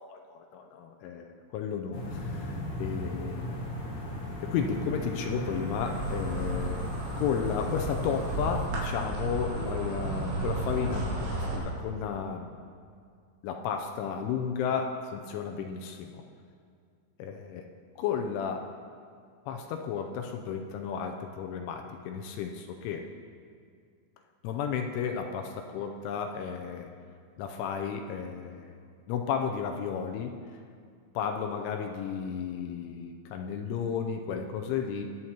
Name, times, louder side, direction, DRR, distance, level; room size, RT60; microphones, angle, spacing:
voice 1, 0.0-3.6 4.4-6.9 7.1-12.6 13.4-16.2 17.2-17.7 18.0-18.7 19.5-23.0 24.4-26.9 27.4-28.7 29.1-30.3 31.1-35.1, left 7 dB, 85° left, 4 dB, 3.0 m, -33 dB
sound 1, 1.9-8.6, equal, 55° left, 1.5 m, -37 dB
Insect, 5.5-11.6, right 2 dB, 80° right, 4.7 m, -33 dB
21.5 x 7.9 x 2.9 m, 2.2 s
omnidirectional pair, 5.5 m